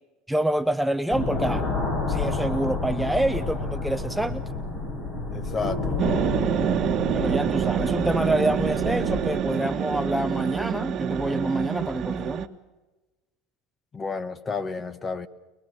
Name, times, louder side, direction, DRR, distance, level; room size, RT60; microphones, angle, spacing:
voice 1, 0.3-1.7 2.1-4.4 7.1-12.5, right 1 dB, ahead, 10 dB, 0.6 m, -27 dB
sound 1, 1.1-9.4, left 3 dB, 45° left, 7.6 m, -30 dB
voice 2, 5.3-6.0 13.9-15.3, left 4 dB, 25° left, 14 dB, 1.2 m, -31 dB
sound 2, 6.0-12.5, right 9 dB, 40° right, 1.3 m, -27 dB
23.5 x 21.5 x 6.3 m, 1.1 s
supercardioid pair, 115°, 0 cm